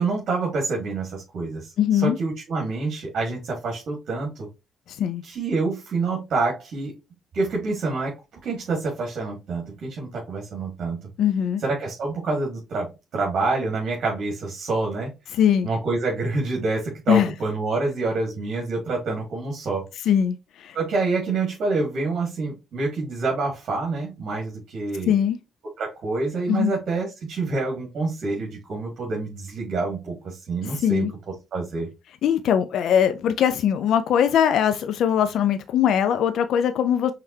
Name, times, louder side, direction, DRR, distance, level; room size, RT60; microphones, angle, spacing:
voice 1, 0.0-4.5 5.2-6.9 7.3-8.1 8.4-11.0 11.6-15.1 15.6-19.9 20.7-25.1 25.8-31.1 31.5-31.9, right 3 dB, 60° right, 1.8 m, -27 dB
voice 2, 1.8-2.2 4.9-5.2 11.2-11.6 15.3-15.7 17.1-17.3 20.1-20.8 25.1-25.4 26.5-26.7 30.6-31.1 32.2-37.1, left 9 dB, 75° left, 0.4 m, -21 dB
5.7 x 3.3 x 2.7 m
cardioid pair, 90°, 0 cm